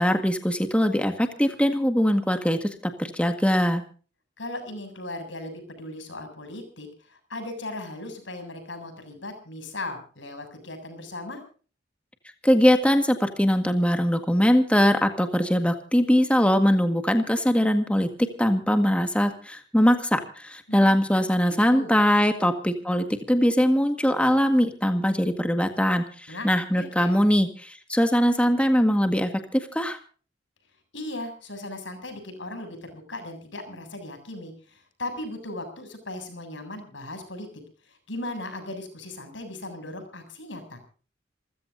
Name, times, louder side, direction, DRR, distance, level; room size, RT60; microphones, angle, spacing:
voice 1, 0.0-3.8 12.4-18.1 18.4-30.0, equal, 5° left, 6 dB, 1.7 m, -22 dB
voice 2, 4.4-11.4 20.7-21.9 26.3-26.5 26.8-27.2 30.9-37.5 37.9-40.8, left 2 dB, 85° left, 8 dB, 7.5 m, -37 dB
28.5 x 15.5 x 2.7 m, 0.40 s
head